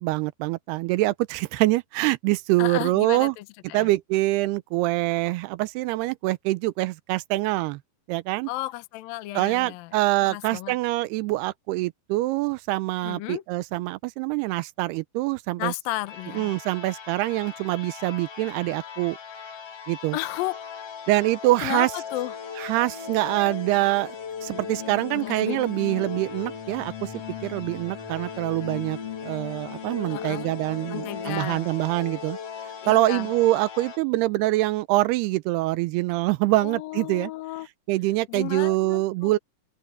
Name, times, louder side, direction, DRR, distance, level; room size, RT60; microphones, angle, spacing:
voice 1, 0.0-3.4 3.7-7.8 8.1-8.5 9.3-15.7 16.3-19.2 19.9-20.2 21.1-21.9 22.6-24.2 24.4-27.1 27.4-32.4 32.9-37.3 37.9-39.4, right 18 dB, 85° right, 2.6 m, -25 dB
voice 2, 2.6-3.9 8.5-9.9 10.2-10.8 13.0-13.4 15.6-16.5 20.1-20.8 21.6-22.3 25.1-25.6 30.1-30.5 30.9-31.7 32.8-33.3 36.6-37.7 38.3-39.3, left 17 dB, 75° left, 2.4 m, -33 dB
sound 1, 16.1-34.0, left 6 dB, 45° left, 2.5 m, -37 dB
open air
omnidirectional pair, 4.7 m